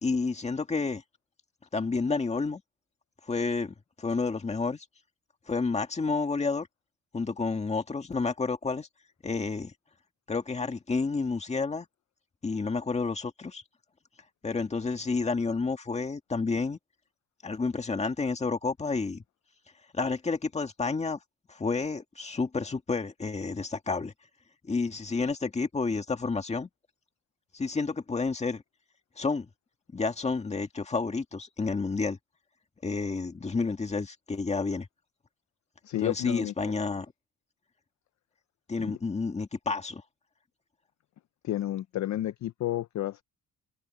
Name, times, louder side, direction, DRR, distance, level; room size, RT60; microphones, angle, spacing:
voice 1, 0.0-1.0 1.7-2.6 3.2-4.9 5.5-6.7 7.1-8.9 9.2-9.7 10.3-11.9 12.4-13.6 14.4-16.8 17.4-19.2 19.9-21.2 21.5-24.1 24.7-26.7 27.5-28.6 29.2-29.5 29.9-32.2 32.8-34.9 36.0-37.1 38.7-40.0, left 4 dB, 15° left, 1.9 m, -30 dB
voice 2, 35.8-36.7 38.8-39.0 41.4-43.2, left 13 dB, 50° left, 0.6 m, -31 dB
cardioid pair, 165°, 37 cm